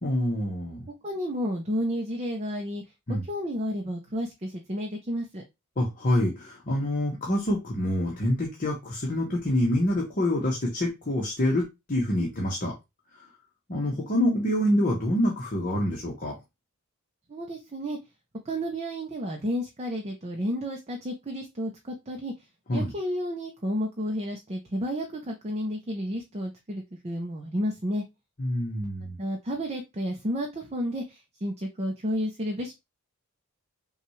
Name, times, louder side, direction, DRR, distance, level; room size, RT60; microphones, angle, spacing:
voice 1, 0.0-0.9 3.1-3.3 5.8-12.7 13.7-16.4 22.7-22.9 28.4-29.2, left 1 dB, 35° left, -2 dB, 1.0 m, -26 dB
voice 2, 1.0-2.8 3.1-5.4 17.3-18.0 18.5-22.3 22.7-28.0 29.2-32.7, equal, 30° right, 1 dB, 0.6 m, -31 dB
5.7 x 2.4 x 3.1 m, 0.23 s
head